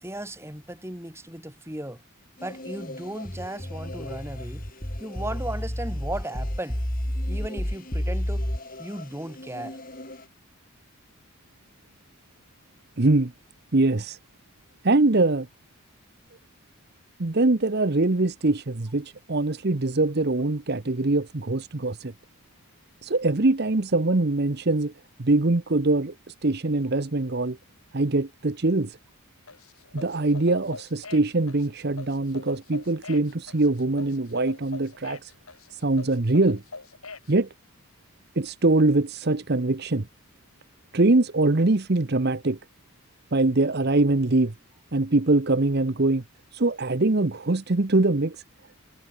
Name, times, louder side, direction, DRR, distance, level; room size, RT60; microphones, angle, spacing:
voice 1, 0.0-2.0 2.4-4.7 5.0-6.8 7.3-8.4 8.8-9.8, right 1 dB, 10° right, 4.3 m, -36 dB
sound 1, 2.4-10.3, left 2 dB, 40° left, 7.5 m, -44 dB
sound 2, 3.2-8.6, equal, 20° left, 2.5 m, -30 dB
voice 2, 13.0-13.3 13.7-14.2 14.8-15.5 17.2-22.1 23.0-24.9 25.2-27.6 27.9-29.0 29.9-35.3 35.7-36.6 37.3-37.5 38.4-40.1 40.9-42.6 43.3-44.5 44.9-46.2 46.5-48.4, right 2 dB, 45° right, 0.9 m, -23 dB
sound 3, 29.5-37.3, left 4 dB, 80° left, 4.6 m, -43 dB
head